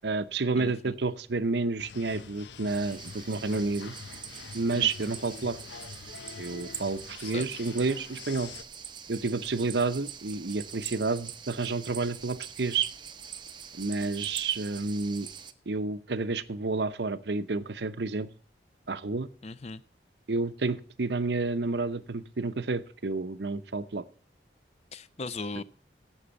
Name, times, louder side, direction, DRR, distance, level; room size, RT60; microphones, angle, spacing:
voice 1, 0.0-3.9 4.5-5.6 6.4-8.5 9.1-12.9 13.7-15.3 15.7-18.3 18.9-19.3 20.3-24.0, right 3 dB, 75° right, 0.8 m, -30 dB
voice 2, 0.6-0.9 4.8-5.1 7.2-7.4 19.4-19.8 24.9-25.6, left 3 dB, 35° left, 0.5 m, -38 dB
sound 1, 1.8-8.6, left 6 dB, 85° left, 0.7 m, -46 dB
sound 2, 2.7-15.5, right 7 dB, 25° right, 0.7 m, -44 dB
11.5 x 8.0 x 6.9 m
head